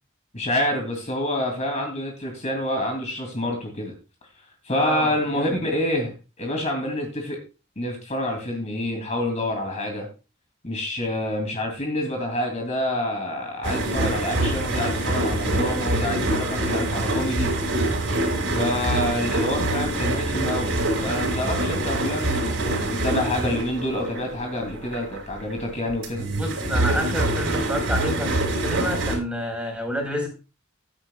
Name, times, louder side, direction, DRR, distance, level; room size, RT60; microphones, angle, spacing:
voice 1, 0.3-3.9 4.6-7.4 7.8-10.1 10.6-17.5 18.5-26.3, left 1 dB, 35° left, 2 dB, 2.5 m, -27 dB
voice 2, 4.7-5.6 26.4-30.3, equal, 5° right, 2 dB, 4.3 m, -29 dB
sound 1, 13.6-25.6 25.9-29.2, right 1 dB, 75° right, 4.5 m, -25 dB
15.0 x 10.0 x 2.3 m, 0.31 s
head